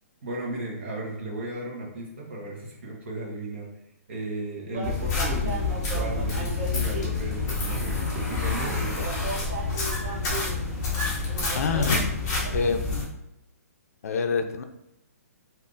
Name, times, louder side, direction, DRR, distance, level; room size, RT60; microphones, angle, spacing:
voice 1, 0.2-3.7 4.1-9.5, right 2 dB, 45° right, -3 dB, 0.9 m, -35 dB
sound 1, 4.7-12.7, right 2 dB, 20° right, 0.5 m, -37 dB
sound 2, 4.8-13.0, left 4 dB, 20° left, 0.7 m, -28 dB
voice 2, 11.5-12.2 12.5-12.9 14.0-14.6, left 5 dB, 65° left, 7 dB, 0.4 m, -26 dB
3.4 x 2.4 x 2.5 m, 0.84 s
hypercardioid pair, 170°, 9 cm